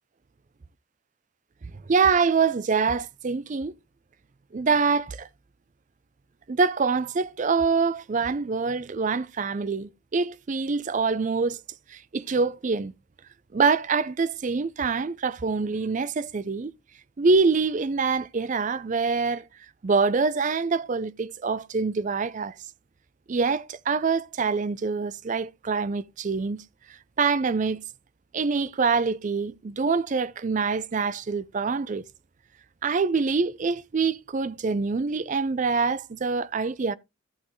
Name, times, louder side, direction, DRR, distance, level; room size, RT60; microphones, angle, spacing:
voice 1, 1.9-3.7 4.5-5.3 6.5-11.6 11.9-12.9 13.5-16.7 17.2-19.4 19.8-22.5 23.3-26.6 27.2-27.8 28.3-32.0 32.8-36.9, right 4 dB, 35° right, 0.4 m, -25 dB
13.5 x 6.1 x 3.1 m
head